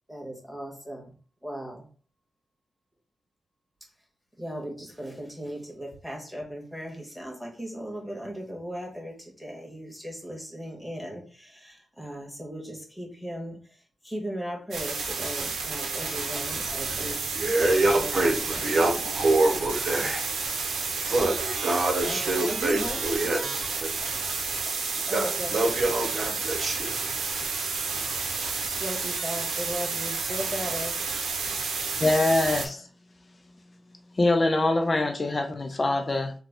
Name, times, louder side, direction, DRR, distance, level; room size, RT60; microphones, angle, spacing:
voice 1, 0.1-1.1 1.4-1.9 4.4-13.6 14.0-17.2 17.9-18.7 22.0-23.4 25.1-25.9 28.8-31.0, equal, 5° left, 0 dB, 1.6 m, -37 dB
sound 1, 14.7-32.7, right 4 dB, 90° right, 0.7 m, -31 dB
voice 2, 16.7-17.0 17.3-20.3 21.1-23.9 24.3-24.5 25.1-27.0, right 2 dB, 60° right, 1 dB, 1.0 m, -26 dB
voice 3, 32.0-32.8 34.2-36.3, left 2 dB, 40° left, 6 dB, 0.5 m, -24 dB
3.9 x 2.3 x 3.7 m, 0.41 s
cardioid pair, 60°, 0 cm